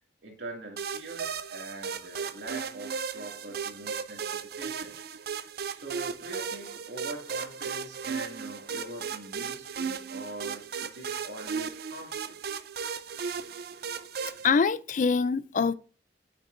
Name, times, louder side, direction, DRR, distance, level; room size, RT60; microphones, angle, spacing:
voice 1, 0.2-5.0 5.7-12.4, right 2 dB, 85° right, 2.4 m, -43 dB
sound 1, 0.8-14.5, right 6 dB, 60° right, 0.5 m, -36 dB
voice 2, 14.4-15.7, left 5 dB, 45° left, 0.4 m, -24 dB
9.3 x 6.3 x 2.6 m
head